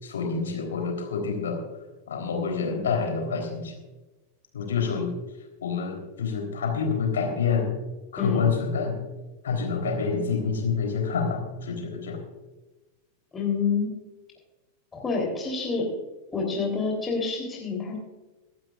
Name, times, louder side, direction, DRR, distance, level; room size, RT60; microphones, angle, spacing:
voice 1, 0.0-1.6 2.1-3.7 4.5-5.1 5.6-7.7 8.1-8.9 9.4-12.2, left 5 dB, 65° left, 2 dB, 3.7 m, -27 dB
voice 2, 13.3-13.9 14.9-15.9 16.3-18.0, left 5 dB, 15° left, 0 dB, 3.6 m, -27 dB
23.5 x 12.0 x 2.5 m, 1.1 s
figure-of-eight pair, 90°, 0 cm